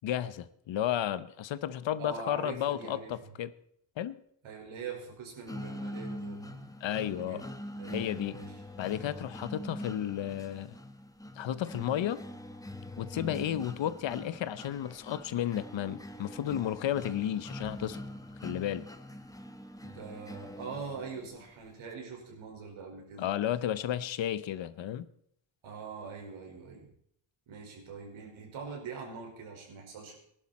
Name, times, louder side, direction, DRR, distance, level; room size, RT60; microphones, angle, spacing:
voice 1, 0.0-3.5 4.0-4.2 6.8-7.4 7.9-8.4 8.8-10.8 11.4-12.2 13.0-18.0 18.4-18.9 23.2-25.1, left 11 dB, 70° left, 16 dB, 0.9 m, -33 dB
voice 2, 2.0-3.3 4.4-6.7 7.0-8.6 19.8-23.3 25.6-26.9 27.5-30.2, right 5 dB, 85° right, 1 dB, 5.1 m, -43 dB
sound 1, 5.5-21.4, left 1 dB, 5° left, 1.1 m, -43 dB
18.5 x 11.5 x 4.3 m, 0.70 s
cardioid pair, 130°, 47 cm